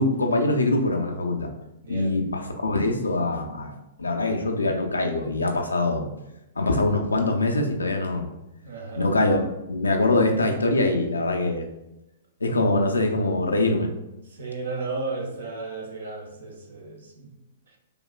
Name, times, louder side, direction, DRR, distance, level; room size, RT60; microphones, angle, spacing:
voice 1, 0.0-1.5 1.9-6.1 6.6-8.3 8.9-11.7 12.4-13.9, left 2 dB, 90° left, 3 dB, 0.5 m, -23 dB
voice 2, 8.6-9.1 14.4-17.3, right 3 dB, 75° right, 1 dB, 0.9 m, -34 dB
5.0 x 2.3 x 2.2 m, 0.92 s
hypercardioid pair, 115°, 0 cm